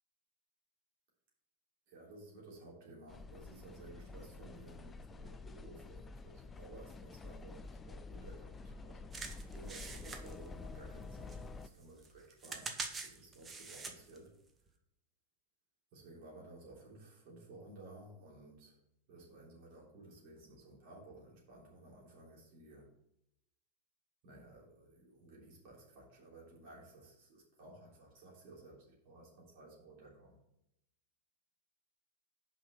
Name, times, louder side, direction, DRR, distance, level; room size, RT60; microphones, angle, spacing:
voice 1, 1.9-9.1 9.5-14.3 15.9-18.8 19.1-22.9 24.2-30.4, right 2 dB, 45° right, -3 dB, 3.3 m, -55 dB
sound 1, 3.1-11.7, left 3 dB, 15° left, 0.4 m, -49 dB
sound 2, 9.1-11.0 11.3-14.2 14.7-14.8, right 4 dB, 20° right, 1.0 m, -45 dB
6.0 x 5.7 x 6.8 m, 0.81 s
figure-of-eight pair, 90°, 0 cm